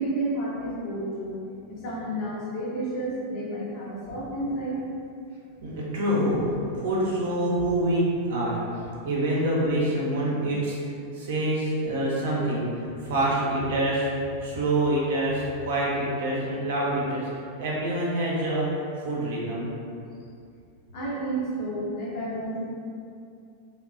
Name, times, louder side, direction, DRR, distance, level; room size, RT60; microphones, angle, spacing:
voice 1, 0.0-1.4 1.7-4.8 20.9-22.6, right 1 dB, 45° left, -5 dB, 0.6 m, -31 dB
sound 1, 4.0-4.8 6.3-7.1 8.8-8.9, equal, 10° right, 0.8 m, -43 dB
voice 2, 5.6-6.4 6.7-8.6 9.0-10.8 11.1-14.1 14.4-17.2 17.6-18.7 19.0-19.7, right 1 dB, 55° right, -5 dB, 0.6 m, -26 dB
2.9 x 2.1 x 2.4 m, 2.5 s
figure-of-eight pair, 90°, 0 cm